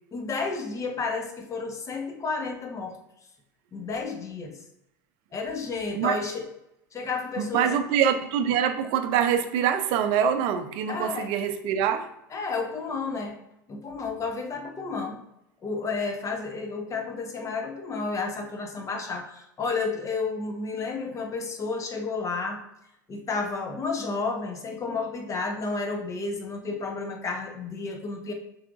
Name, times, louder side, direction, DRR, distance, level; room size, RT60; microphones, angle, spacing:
voice 1, 0.1-3.0 3.7-4.6 5.3-6.5 6.9-7.6 10.9-11.3 12.3-13.4 13.7-15.2 15.6-22.6 23.1-28.3, left 4 dB, 30° left, 3 dB, 1.0 m, -31 dB
voice 2, 7.4-12.1, right 8 dB, 55° right, 9 dB, 0.5 m, -24 dB
5.8 x 3.3 x 2.5 m, 0.83 s
hypercardioid pair, 80°, 11 cm